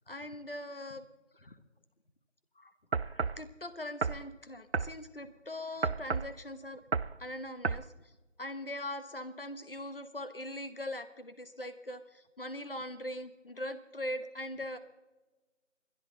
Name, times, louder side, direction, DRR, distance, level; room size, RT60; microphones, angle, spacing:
voice 1, 0.1-1.1 1.3-1.6 2.6-2.7 3.0-6.8 7.2-8.1 8.4-14.8, left 1 dB, 45° left, 11 dB, 1.2 m, -41 dB
sound 1, 2.9-3.4 4.0-4.3 4.7-5.0 5.8-6.3 6.9-7.2 7.6-7.9, right 5 dB, 60° right, 0.5 m, -32 dB
30.0 x 11.0 x 3.9 m, 1.2 s
figure-of-eight pair, 170°, 37 cm